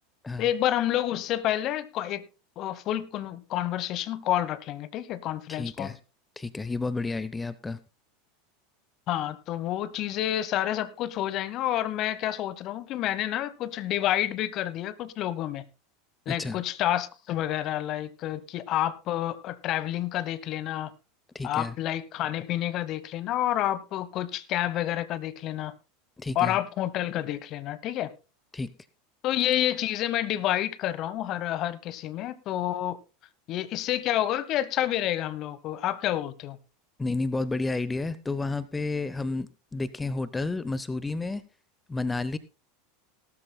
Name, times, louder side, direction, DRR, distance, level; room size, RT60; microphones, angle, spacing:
voice 1, 0.4-2.2 2.6-5.9 9.1-15.6 16.3-20.9 21.4-25.7 26.3-28.1 29.2-33.0 33.5-36.6, left 12 dB, 45° left, 1.1 m, -29 dB
voice 2, 5.5-6.0 6.4-7.8 16.3-16.6 21.3-21.7 26.2-26.6 28.5-28.7 37.0-41.4 41.9-42.4, left 3 dB, 15° left, 0.7 m, -31 dB
18.0 x 13.0 x 2.2 m
hypercardioid pair, 85°, 0 cm